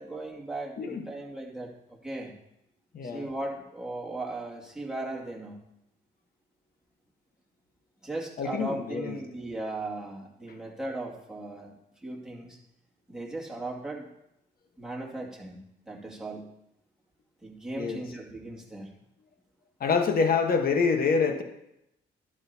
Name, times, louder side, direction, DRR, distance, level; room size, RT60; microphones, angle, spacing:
voice 1, 0.0-2.3 3.0-5.6 8.0-12.6 13.1-14.1 14.8-16.5 17.4-18.9, right 2 dB, 5° right, -3 dB, 2.3 m, -37 dB
voice 2, 0.8-1.1 2.9-3.3 8.4-9.2 17.8-18.0 19.8-21.4, left 5 dB, 50° left, 5 dB, 1.3 m, -26 dB
11.5 x 10.0 x 2.8 m, 0.84 s
cardioid pair, 90°, 20 cm